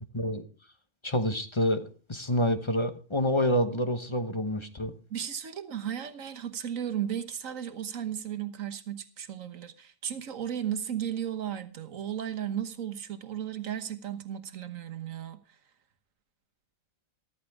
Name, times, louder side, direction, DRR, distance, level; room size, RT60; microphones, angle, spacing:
voice 1, 0.1-0.4 1.0-4.9, equal, 25° left, 1.0 m, -28 dB
voice 2, 5.1-15.4, right 9 dB, 70° right, 1.5 m, -35 dB
14.0 x 13.5 x 3.5 m
omnidirectional pair, 1.4 m